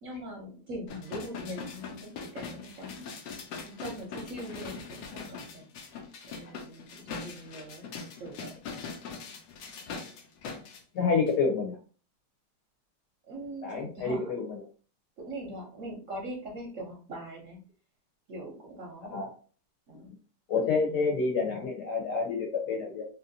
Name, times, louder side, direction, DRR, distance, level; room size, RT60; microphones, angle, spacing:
voice 1, 0.0-3.1 3.6-5.7 6.2-7.9 8.2-8.6 13.3-14.3 15.2-17.6 18.3-19.2 19.9-20.1 20.8-21.0, right 1 dB, 60° right, -1 dB, 0.8 m, -42 dB
sound 1, 0.9-10.8 11.3-11.4, left 5 dB, 85° left, 1.3 m, -42 dB
voice 2, 10.9-11.8 13.6-14.6 19.1-19.3 20.5-23.1, left 4 dB, 70° left, 1 dB, 1.5 m, -28 dB
3.1 x 2.8 x 2.6 m, 0.38 s
omnidirectional pair, 1.9 m